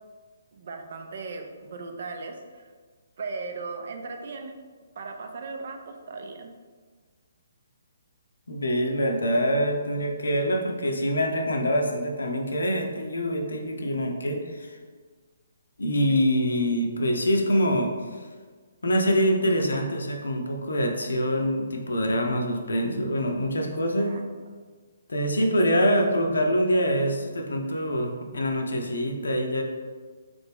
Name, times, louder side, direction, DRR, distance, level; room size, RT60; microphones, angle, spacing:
voice 1, 0.5-2.7 3.2-4.6 5.0-6.5 23.6-24.2 25.4-25.8, right 4 dB, 50° right, 4 dB, 0.5 m, -38 dB
voice 2, 8.5-14.8 15.8-18.3 18.8-24.2 25.1-29.6, equal, 65° left, 3 dB, 0.6 m, -25 dB
3.9 x 3.4 x 3.4 m, 1.5 s
figure-of-eight pair, 135°, 0 cm